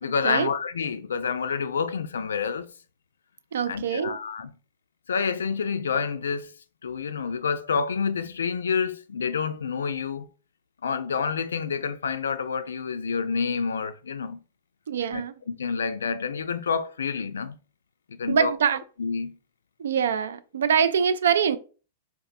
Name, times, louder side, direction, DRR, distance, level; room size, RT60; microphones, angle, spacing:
voice 1, 0.0-2.7 3.7-4.5 5.1-6.5 6.8-10.3 10.8-14.4 15.1-17.6 18.1-18.6 19.0-19.4, left 5 dB, 90° left, 0.3 m, -28 dB
voice 2, 3.5-4.2 14.9-15.3 18.3-18.8 19.8-21.6, right 7 dB, 80° right, 0.3 m, -24 dB
3.9 x 2.4 x 2.5 m
hypercardioid pair, 120°, 0 cm